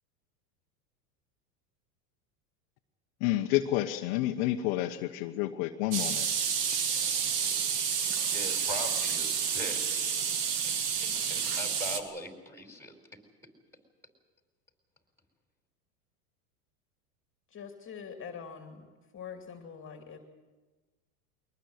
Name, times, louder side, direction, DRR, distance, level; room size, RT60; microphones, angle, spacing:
voice 1, 3.2-6.3, left 14 dB, 55° left, 5 dB, 1.2 m, -29 dB
sound 1, 5.9-12.0, right 7 dB, 80° right, 2.1 m, -30 dB
voice 2, 8.3-10.2 10.9-12.9, left 1 dB, 5° left, 4 dB, 4.5 m, -41 dB
voice 3, 17.5-18.9 19.1-20.2, left 6 dB, 25° left, 5 dB, 2.5 m, -44 dB
23.0 x 19.0 x 7.9 m, 1.3 s
hypercardioid pair, 105°, 47 cm